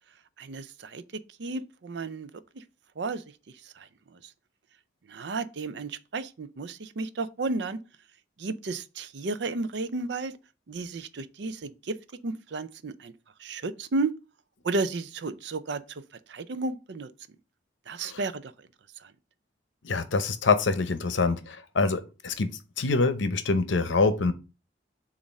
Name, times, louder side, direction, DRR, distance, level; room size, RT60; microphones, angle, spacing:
voice 1, 0.4-2.3 2.5-2.6 3.0-3.2 3.6-4.3 5.1-7.8 8.4-10.4 10.7-12.0 12.2-13.1 13.4-14.1 14.6-16.0 16.3-17.1 17.9-18.5 19.0-19.1, right 3 dB, 65° right, 0.5 m, -33 dB
voice 2, 19.8-22.5 22.8-24.3, left 3 dB, 75° left, 0.7 m, -25 dB
7.1 x 2.5 x 5.2 m
head